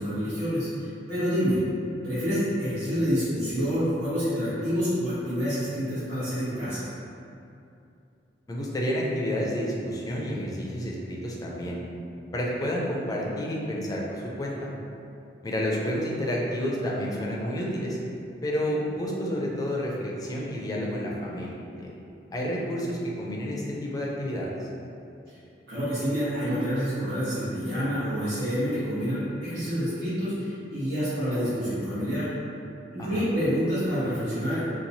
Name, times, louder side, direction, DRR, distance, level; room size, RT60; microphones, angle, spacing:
voice 1, 0.0-1.6 2.0-6.9 25.7-32.3 32.9-34.6, equal, 75° right, -14 dB, 1.1 m, -27 dB
voice 2, 8.5-11.8 12.3-14.7 15.4-18.0 18.4-21.9 22.3-24.5 33.0-33.2, equal, 20° left, -3 dB, 0.4 m, -30 dB
2.9 x 2.2 x 2.6 m, 2.6 s
head